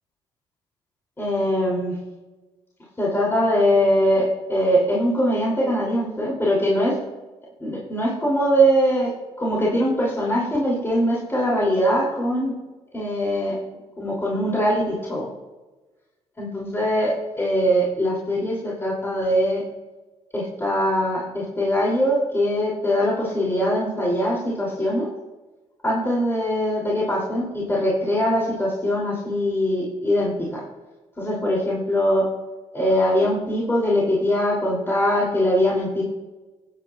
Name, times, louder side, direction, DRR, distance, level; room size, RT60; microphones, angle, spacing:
voice 1, 1.2-2.0 3.0-7.0 7.6-9.1 9.4-12.5 12.9-13.6 14.0-15.3 16.4-19.6 20.3-25.1 25.8-30.6 31.2-32.2 32.7-36.0, equal, 20° left, -5 dB, 2.9 m, -22 dB
20.0 x 8.4 x 2.4 m, 1.2 s
cardioid pair, 75°, 12 cm